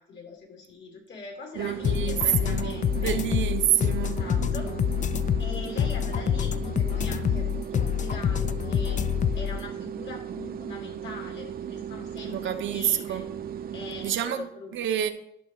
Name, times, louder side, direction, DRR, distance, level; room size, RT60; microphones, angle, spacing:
voice 1, 0.0-3.2 4.0-4.7 5.4-9.0 9.3-13.2 13.7-14.8, left 3 dB, 65° left, 3.0 m, -42 dB
sound 1, 1.5-14.2, right 8 dB, 50° right, 0.6 m, -37 dB
voice 2, 1.5-4.2 12.2-13.2 14.0-15.1, right 10 dB, 75° right, 0.9 m, -28 dB
sound 2, 1.8-9.6, left 9 dB, 40° left, 0.4 m, -27 dB
11.0 x 6.2 x 3.2 m
cardioid pair, 90°, 20 cm